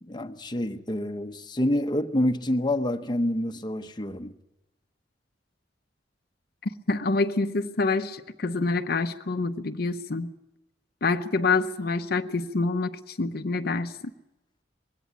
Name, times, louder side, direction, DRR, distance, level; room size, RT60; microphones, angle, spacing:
voice 1, 0.0-4.3, left 1 dB, 25° left, 0.9 m, -27 dB
voice 2, 6.9-10.3 11.0-13.9, left 3 dB, 60° left, 0.7 m, -26 dB
21.0 x 16.5 x 9.1 m
head